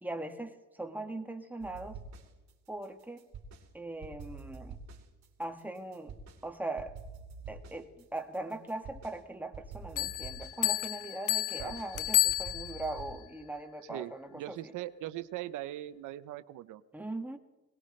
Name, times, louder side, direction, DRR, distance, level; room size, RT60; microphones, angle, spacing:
voice 1, 0.0-2.0 2.7-3.3 3.7-4.8 5.4-6.1 6.4-7.0 7.5-14.7 16.9-17.4, right 2 dB, 5° right, 5 dB, 1.7 m, -40 dB
sound 1, 1.6-2.5 2.8-3.7 4.0-6.4 6.8-9.2 9.5-13.2, right 4 dB, 65° right, 3.3 m, -47 dB
Bell, 10.0-13.0, left 15 dB, 85° left, 0.8 m, -31 dB
voice 2, 13.8-16.8, right 14 dB, 85° right, 13 dB, 0.7 m, -40 dB
21.5 x 19.5 x 3.2 m, 1.1 s
cardioid pair, 90°, 30 cm